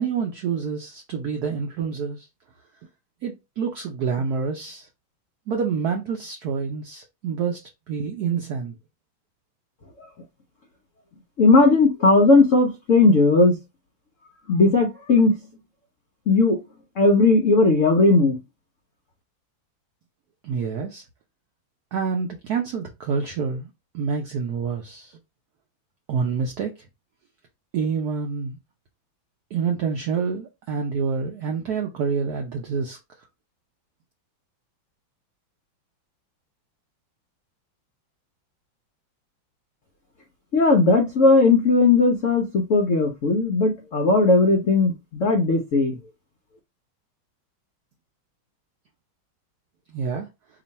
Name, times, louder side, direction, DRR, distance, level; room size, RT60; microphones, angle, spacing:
voice 1, 0.0-2.3 3.2-4.9 5.5-8.7 20.4-21.0 21.9-25.2 26.1-26.7 27.7-28.6 29.5-33.0 49.9-50.3, right 6 dB, 70° right, 0.9 m, -27 dB
voice 2, 11.4-13.6 14.5-15.4 16.3-16.6 17.0-18.4 40.5-46.0, left 3 dB, 70° left, 0.7 m, -17 dB
3.0 x 2.5 x 4.0 m
omnidirectional pair, 2.2 m